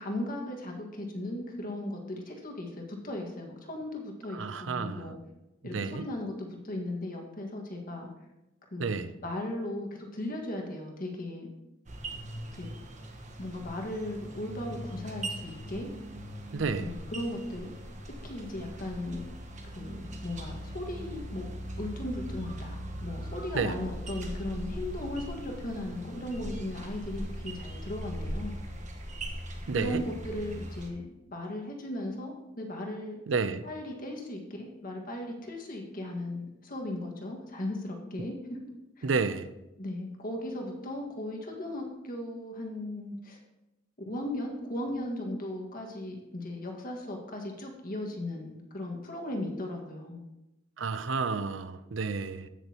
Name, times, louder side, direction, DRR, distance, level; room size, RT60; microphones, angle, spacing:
voice 1, 0.0-5.2 5.6-8.1 8.7-11.5 12.6-12.7 13.4-15.9 16.8-17.7 18.1-19.2 19.6-21.5 21.8-28.6 29.7-31.1 31.3-33.2 33.6-38.6 39.0-39.1 39.8-43.4 44.0-50.2, left 1 dB, 50° left, 1.8 m, -37 dB
voice 2, 4.3-5.1 5.7-6.0 8.8-9.1 16.5-16.9 23.5-23.7 29.7-30.0 33.3-33.7 39.0-39.5 50.8-52.5, right 4 dB, 85° right, 0.6 m, -30 dB
sound 1, 11.9-30.9, equal, 40° right, 1.3 m, -40 dB
15.5 x 6.6 x 3.0 m
head